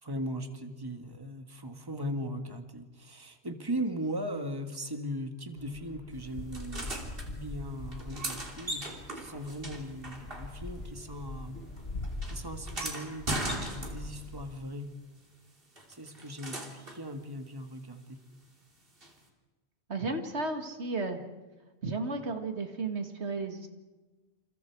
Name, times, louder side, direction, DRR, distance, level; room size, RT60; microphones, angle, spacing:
voice 1, 0.0-11.6 12.3-14.9 15.9-18.2, equal, 20° right, 6 dB, 1.8 m, -38 dB
sound 1, 5.6-14.6, left 2 dB, 65° left, 2.1 m, -43 dB
sound 2, 6.5-7.3 7.9-10.9 11.1-14.3 15.8-17.0 19.0-19.1, right 1 dB, 60° right, 3.5 m, -39 dB
voice 2, 19.9-21.2 21.8-23.7, right 3 dB, 90° right, 5 dB, 2.4 m, -33 dB
29.0 x 28.5 x 4.7 m, 1.2 s
omnidirectional pair, 1.1 m